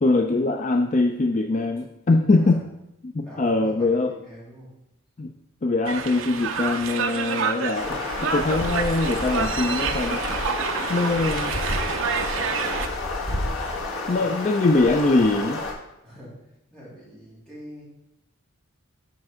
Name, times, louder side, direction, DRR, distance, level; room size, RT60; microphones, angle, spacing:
voice 1, 0.0-2.6 3.0-4.1 5.2-5.3 5.6-10.2 10.9-11.6 14.1-15.6, left 2 dB, 35° left, 4 dB, 0.4 m, -22 dB
voice 2, 3.2-4.7 14.0-14.3 16.0-16.4 16.7-17.8, equal, 5° left, -9 dB, 3.0 m, -43 dB
sound 1, 5.8-12.9, right 5 dB, 65° right, 0.6 m, -28 dB
sound 2, 7.7-15.7, left 2 dB, 65° left, 1.4 m, -30 dB
7.3 x 5.2 x 4.9 m, 0.86 s
head